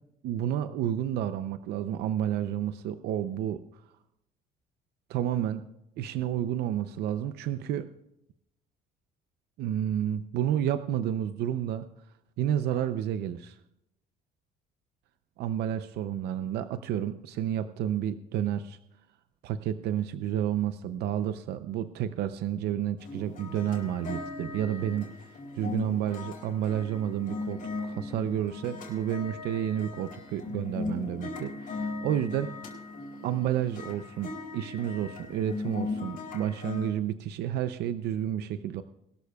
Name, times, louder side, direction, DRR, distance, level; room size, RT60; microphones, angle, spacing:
voice 1, 0.2-3.8 5.1-5.6 6.0-7.9 9.6-11.9 12.4-13.6 15.4-18.8 19.4-25.1 25.5-32.5 33.2-38.8, right 10 dB, 75° right, 11 dB, 0.6 m, -30 dB
sound 1, 23.0-36.9, left 3 dB, 55° left, 4.4 m, -38 dB
21.5 x 13.0 x 2.3 m, 0.82 s
cardioid pair, 110°, 17 cm